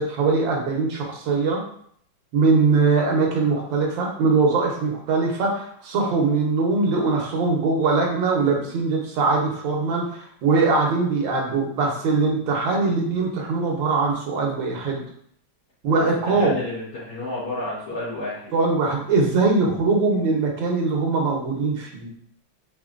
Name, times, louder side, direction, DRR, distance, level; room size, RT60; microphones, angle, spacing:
voice 1, 0.0-1.6 2.3-15.0 15.8-16.6 18.5-22.1, right 4 dB, 65° right, 0 dB, 1.5 m, -21 dB
voice 2, 15.9-18.5, left 2 dB, 85° left, -11 dB, 2.3 m, -31 dB
5.0 x 2.8 x 2.5 m, 0.63 s
omnidirectional pair, 2.4 m